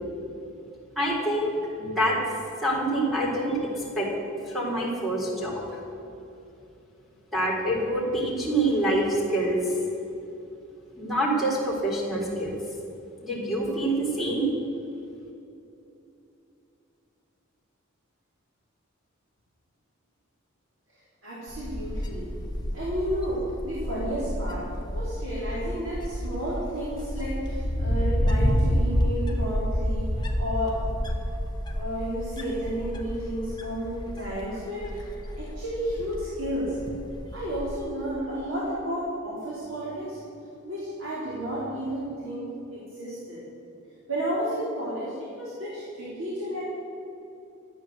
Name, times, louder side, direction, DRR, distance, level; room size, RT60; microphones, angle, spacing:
voice 1, 1.0-2.2 2.6-4.1 4.5-5.8 7.3-9.8 11.0-12.5 13.2-14.5, right 1 dB, ahead, -5 dB, 3.8 m, -26 dB
voice 2, 21.2-22.3 22.7-24.7 24.9-30.8 31.7-36.8 37.3-40.2 40.6-42.5 42.7-43.4 44.1-46.6, equal, 70° right, -8 dB, 4.0 m, -32 dB
Wind, 21.5-37.8, equal, 20° left, 1.4 m, -29 dB
14.0 x 9.3 x 7.9 m, 2.8 s
head